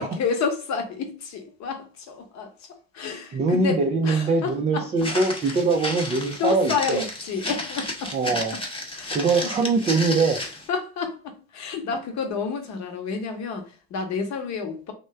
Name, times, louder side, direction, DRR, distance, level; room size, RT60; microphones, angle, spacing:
voice 1, 0.0-2.5 2.9-5.1 5.4-5.6 6.4-8.1 8.5-8.6 8.9-9.5 10.4-14.9, left 5 dB, 40° left, 0.9 m, -30 dB
voice 2, 3.3-7.0 8.1-8.6 9.1-10.4, right 3 dB, 20° right, 0.3 m, -22 dB
Walk footsteps, 5.0-10.7, left 2 dB, 15° left, 0.7 m, -32 dB
3.1 x 2.2 x 3.1 m
hypercardioid pair, 70°, 41 cm